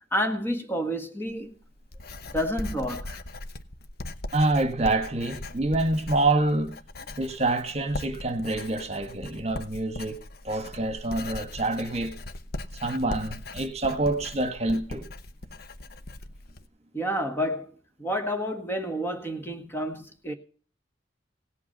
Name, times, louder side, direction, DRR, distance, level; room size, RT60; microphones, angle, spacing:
voice 1, 0.1-1.5 2.3-3.2 16.9-17.7 18.0-20.3, equal, 10° left, 1.6 m, -29 dB
Writing, 1.3-16.7, left 2 dB, 55° left, 1.0 m, -39 dB
voice 2, 4.3-6.8 7.2-10.2 10.4-12.1 12.8-15.1, right 2 dB, 35° right, 1.6 m, -26 dB
17.5 x 8.4 x 5.4 m
head